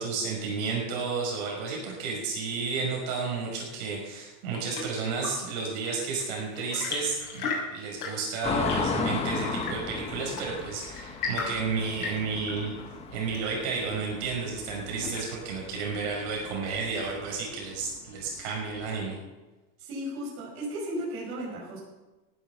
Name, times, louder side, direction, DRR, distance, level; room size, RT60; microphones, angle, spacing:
voice 1, 0.0-12.7 13.1-19.2, right 4 dB, 50° right, -1 dB, 6.0 m, -32 dB
Chirp tweet / Engine / Tap, 4.1-15.6, left 4 dB, 80° left, 6.7 m, -38 dB
sound 1, 8.4-19.0, left 4 dB, 15° left, 1.0 m, -35 dB
voice 2, 19.8-21.8, equal, 30° right, -5 dB, 5.8 m, -35 dB
16.0 x 10.5 x 7.2 m, 1.1 s
supercardioid pair, 165°, 43 cm